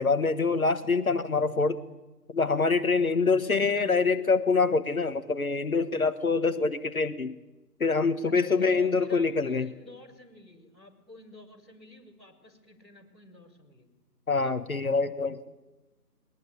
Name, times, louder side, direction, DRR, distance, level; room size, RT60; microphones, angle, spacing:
voice 1, 0.0-1.8 2.3-7.4 7.8-9.7 14.3-15.4, left 4 dB, 55° left, 9 dB, 1.4 m, -25 dB
voice 2, 3.4-4.0 8.3-13.9, left 1 dB, ahead, -12 dB, 2.9 m, -48 dB
21.5 x 20.5 x 9.7 m, 1.1 s
figure-of-eight pair, 165°, 49 cm